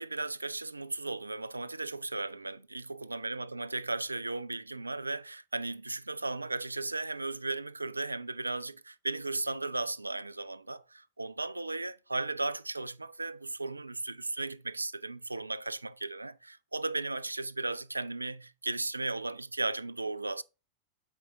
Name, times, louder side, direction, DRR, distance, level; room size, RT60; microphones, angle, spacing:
voice 1, 0.0-20.4, right 2 dB, 80° right, 0.3 m, -36 dB
8.0 x 4.7 x 3.4 m
figure-of-eight pair, 90°, 0 cm